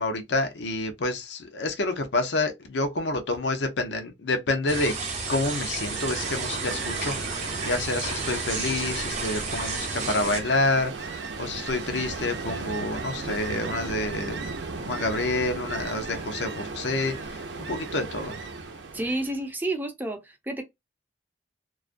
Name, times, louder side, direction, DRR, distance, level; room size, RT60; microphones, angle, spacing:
voice 1, 0.0-4.9 5.3-14.4 14.7-18.4, left 2 dB, 80° left, 0.6 m, -28 dB
sound 1, 4.7-10.4, right 4 dB, 40° right, 0.8 m, -32 dB
Ocean, 5.4-19.5, right 4 dB, 75° right, 0.5 m, -36 dB
voice 2, 18.9-20.6, right 2 dB, 10° right, 0.5 m, -30 dB
2.4 x 2.2 x 2.4 m
head